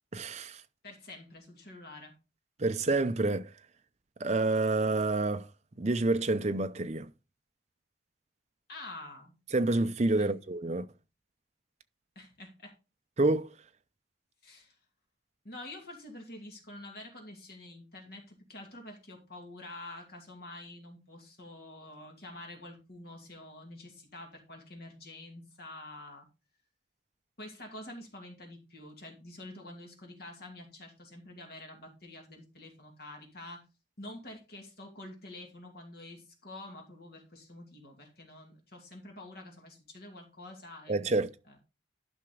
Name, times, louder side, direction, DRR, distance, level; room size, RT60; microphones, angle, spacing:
voice 1, 0.1-0.6 2.6-3.5 4.2-5.5 5.8-7.1 9.5-10.9 13.2-13.5 40.9-41.3, right 2 dB, 35° right, 0.6 m, -28 dB
voice 2, 0.8-2.1 8.7-9.4 10.2-10.3 12.2-12.7 14.4-14.7 15.4-26.3 27.4-33.6 34.0-41.1 41.5-41.6, left 1 dB, 50° left, 2.5 m, -47 dB
12.0 x 5.8 x 3.8 m
head